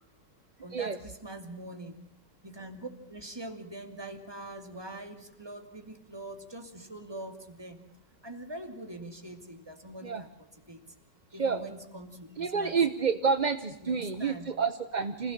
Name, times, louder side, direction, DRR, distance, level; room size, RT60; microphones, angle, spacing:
voice 1, 0.6-2.0 2.4-7.8 8.2-10.3 10.7-10.8 11.3-12.8 13.8-14.5, right 1 dB, 15° right, 6 dB, 2.4 m, -43 dB
voice 2, 12.4-15.3, right 5 dB, 35° right, 9 dB, 0.7 m, -29 dB
26.5 x 16.5 x 7.3 m, 0.83 s
omnidirectional pair, 1.9 m